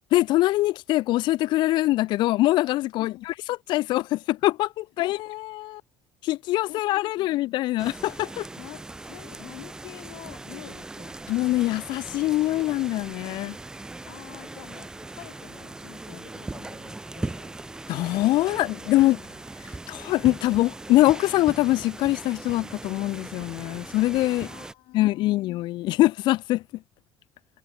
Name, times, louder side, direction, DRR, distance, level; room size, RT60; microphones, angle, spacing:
voice 1, 0.1-5.2 6.3-8.5 11.3-13.6 17.9-19.2 19.9-24.5 24.9-26.6, left 17 dB, 65° left, 0.7 m, -23 dB
voice 2, 3.0-3.3 5.0-5.8 6.7-7.4 8.6-11.2 14.0-17.6 19.1-19.4 24.4-25.4, left 19 dB, 85° left, 3.5 m, -45 dB
sound 1, 7.8-24.7, right 2 dB, 10° right, 0.5 m, -39 dB
cardioid pair, 170°, 8 cm